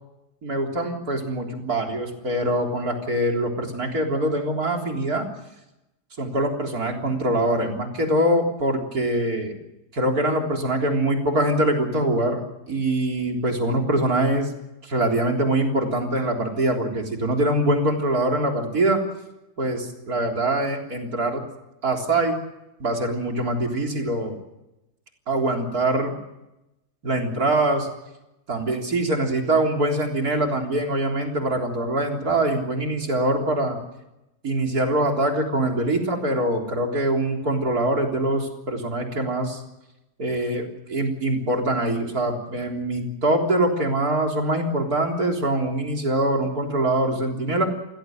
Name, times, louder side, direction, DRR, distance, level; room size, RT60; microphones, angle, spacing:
voice 1, 0.4-5.3 6.2-9.5 9.9-12.4 12.7-14.5 14.8-19.0 19.6-21.4 21.8-22.4 22.8-24.3 25.3-26.1 27.0-27.9 28.5-33.8 34.4-39.6 40.2-47.7, right 1 dB, 65° right, 2 dB, 4.2 m, -23 dB
28.5 x 16.5 x 7.7 m, 0.94 s
omnidirectional pair, 1.7 m